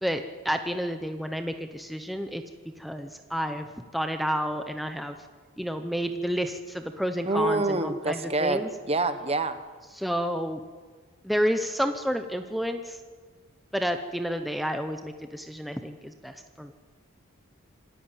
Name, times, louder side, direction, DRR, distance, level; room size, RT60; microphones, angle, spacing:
voice 1, 0.0-2.4 2.8-5.2 5.6-8.7 9.9-10.6 11.2-13.0 13.7-16.7, equal, ahead, 6 dB, 0.8 m, -30 dB
voice 2, 7.3-9.6, right 2 dB, 25° right, 11 dB, 1.1 m, -26 dB
26.0 x 13.5 x 9.0 m, 1.5 s
head